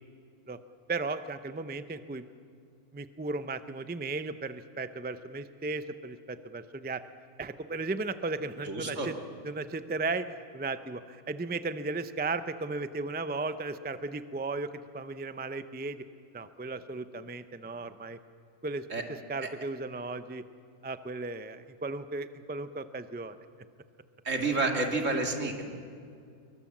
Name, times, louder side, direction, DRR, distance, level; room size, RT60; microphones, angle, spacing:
voice 1, 0.9-2.3 2.9-7.0 7.4-9.1 9.4-16.0 16.3-18.2 18.6-18.9 19.3-20.4 20.8-23.4, right 3 dB, 10° right, 11 dB, 0.5 m, -35 dB
voice 2, 8.6-9.1 18.9-19.0 19.4-19.5 24.2-25.6, right 3 dB, 70° right, 3 dB, 2.7 m, -29 dB
27.0 x 23.5 x 7.4 m, 2.4 s
omnidirectional pair, 1.3 m